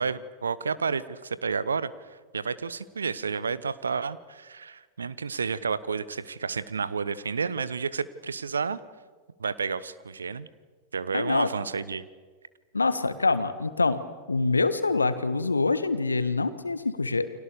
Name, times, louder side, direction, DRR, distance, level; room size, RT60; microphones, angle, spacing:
voice 1, 0.0-8.8 9.4-10.5 10.9-12.1, right 5 dB, 75° right, 17 dB, 1.1 m, -31 dB
voice 2, 11.1-11.5 12.7-14.0 14.3-17.3, left 3 dB, 80° left, 12 dB, 1.7 m, -25 dB
30.0 x 24.5 x 7.0 m, 1.4 s
figure-of-eight pair, 90°, 0 cm